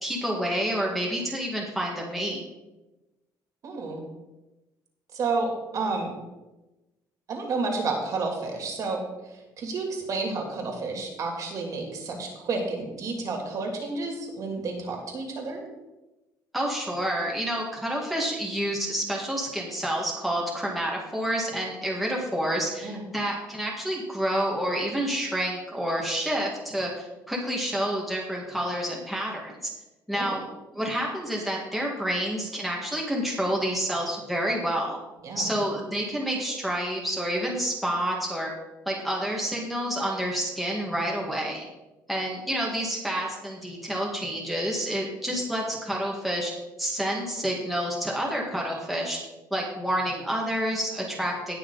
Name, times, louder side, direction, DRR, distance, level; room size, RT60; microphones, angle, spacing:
voice 1, 0.0-2.4 16.5-29.7 30.1-30.4 30.7-35.0 35.4-38.5 38.9-41.7 42.1-46.5 46.8-49.2 49.5-51.6, equal, ahead, -3 dB, 1.9 m, -29 dB
voice 2, 3.6-4.0 5.1-6.2 7.3-15.6 22.8-23.0 30.1-30.4 35.2-35.5, right 3 dB, 50° right, 2 dB, 2.8 m, -31 dB
18.5 x 6.2 x 4.0 m, 1.0 s
cardioid pair, 150°, 7 cm